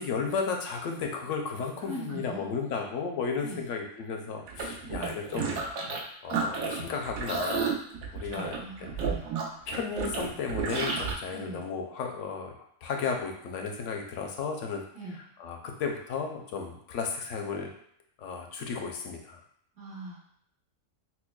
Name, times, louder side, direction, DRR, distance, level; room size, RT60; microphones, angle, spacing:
voice 1, 0.0-5.6 6.2-7.7 8.1-9.1 9.7-12.6 12.8-14.8 15.4-17.7 18.2-19.4, left 5 dB, 70° left, 2 dB, 0.9 m, -34 dB
voice 2, 1.8-2.5 3.4-3.7 4.8-5.2 8.2-9.3 11.3-11.7 14.9-15.2 19.8-20.2, right 1 dB, 65° right, -7 dB, 1.7 m, -41 dB
sound 1, 4.5-6.0 6.3-11.1, right 5 dB, 80° right, 1.1 m, -32 dB
5.7 x 2.2 x 2.2 m, 0.68 s
omnidirectional pair, 1.4 m